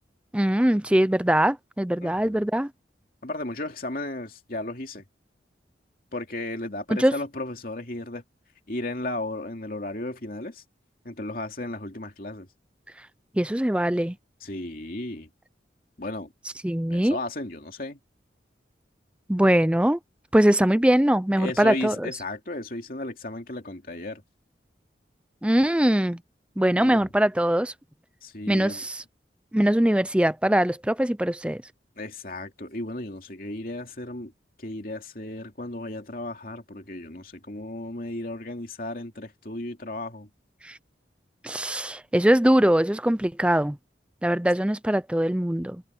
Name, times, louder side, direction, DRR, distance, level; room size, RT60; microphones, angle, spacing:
voice 1, 0.3-2.7 7.0-7.2 13.3-14.2 16.6-17.2 19.3-20.0 20.3-22.1 25.4-26.2 26.6-27.7 28.5-29.0 29.5-31.6 40.6-40.8 41.4-43.8 44.2-45.8, right 1 dB, 5° right, 0.5 m, -22 dB
voice 2, 2.0-2.4 3.2-5.0 6.1-8.2 8.7-10.6 11.0-12.5 14.4-15.3 16.0-16.3 16.9-18.0 21.4-24.2 26.8-27.0 28.2-28.8 32.0-34.3 34.6-40.3, left 2 dB, 50° left, 2.8 m, -34 dB
head